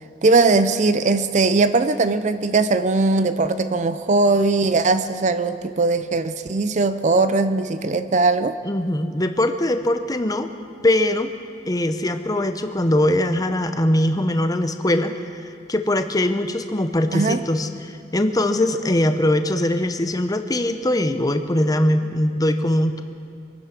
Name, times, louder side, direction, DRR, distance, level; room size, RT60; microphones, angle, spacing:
voice 1, 0.2-8.5 17.1-17.4, right 3 dB, 45° right, 12 dB, 0.5 m, -19 dB
voice 2, 8.6-10.5 10.8-11.3 11.7-15.1 15.7-23.0, left 1 dB, 20° left, 8 dB, 0.8 m, -21 dB
24.5 x 9.7 x 6.0 m, 2.4 s
head